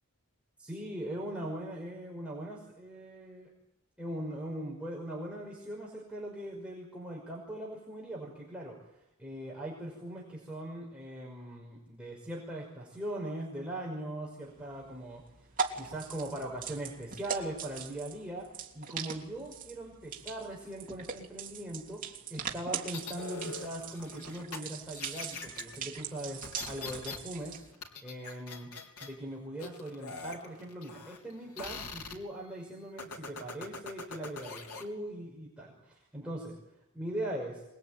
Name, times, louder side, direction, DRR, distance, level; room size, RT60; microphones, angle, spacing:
voice 1, 0.6-3.5 4.0-8.8 9.2-15.2 15.7-27.6 28.0-28.7 29.0-36.6 36.9-37.6, right 1 dB, 5° right, -3 dB, 5.7 m, -40 dB
sound 1, 14.5-27.7, right 6 dB, 40° right, 3.2 m, -41 dB
sound 2, 22.9-24.6 24.9-25.8 26.4-27.2 27.4-29.1 29.6-31.3 31.6-32.2 33.0-34.8, left 3 dB, 90° left, 3.6 m, -42 dB
26.5 x 21.0 x 9.2 m, 0.87 s
head